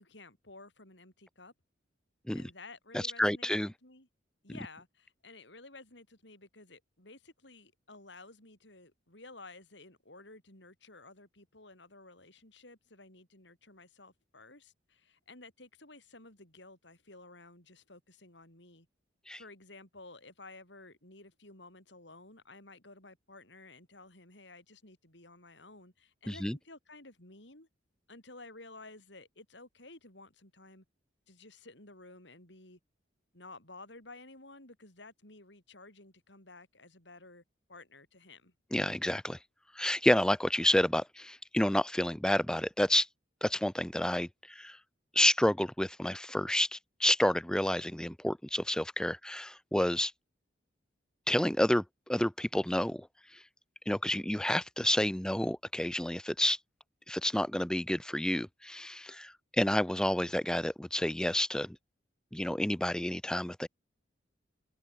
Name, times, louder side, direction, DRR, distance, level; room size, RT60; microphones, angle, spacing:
voice 1, 0.0-1.5 2.3-3.5 3.8-4.1 4.4-18.9 19.4-27.7 28.1-30.8 31.3-32.8 33.3-37.4 37.7-38.5, left 2 dB, 65° left, 6.6 m, -53 dB
voice 2, 2.9-3.7 19.3-19.4 26.3-26.6 38.7-39.4 39.8-43.1 43.4-44.8 45.1-50.1 51.3-53.1 53.3-53.4 53.9-56.6 57.1-61.8 62.3-63.7, left 1 dB, 5° left, 0.4 m, -29 dB
open air
head